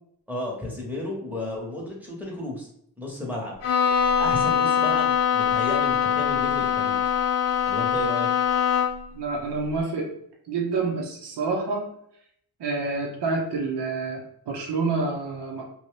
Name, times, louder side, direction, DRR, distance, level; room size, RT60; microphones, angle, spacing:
voice 1, 0.3-2.7 3.0-3.5 4.2-7.0 7.6-8.3, left 1 dB, 5° right, -3 dB, 0.9 m, -33 dB
Bowed string instrument, 3.6-9.1, left 8 dB, 85° left, 0.6 m, -23 dB
voice 2, 9.1-10.1 10.5-11.9 12.6-15.6, right 3 dB, 85° right, 0 dB, 0.7 m, -28 dB
2.7 x 2.3 x 3.1 m, 0.69 s
wide cardioid pair, 110°, 40 cm